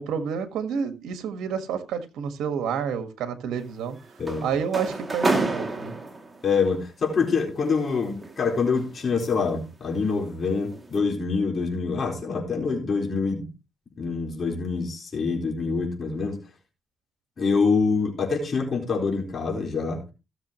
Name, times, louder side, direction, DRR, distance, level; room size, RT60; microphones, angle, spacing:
voice 1, 0.0-4.0 4.4-5.9, right 7 dB, 80° right, 1.6 m, -29 dB
sound 1, 3.6-6.5 7.7-9.6 10.0-10.3 10.7-11.0, right 3 dB, 20° right, 2.5 m, -30 dB
voice 2, 4.2-4.5 6.4-13.5 14.0-16.4 17.4-20.0, left 4 dB, 45° left, 4.1 m, -25 dB
17.0 x 7.2 x 3.0 m
cardioid pair, 90°, 0 cm